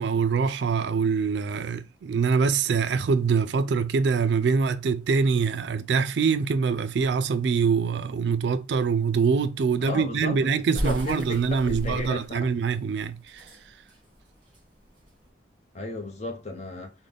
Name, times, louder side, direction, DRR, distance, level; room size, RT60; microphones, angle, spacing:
voice 1, 0.0-13.5, right 5 dB, 75° right, 0.3 m, -24 dB
sound 1, 9.7-15.3, equal, 25° right, 1.5 m, -36 dB
voice 2, 9.8-10.5 10.7-11.4 11.6-12.2 15.7-16.9, left 2 dB, 35° left, 0.6 m, -34 dB
3.7 x 2.1 x 3.4 m
head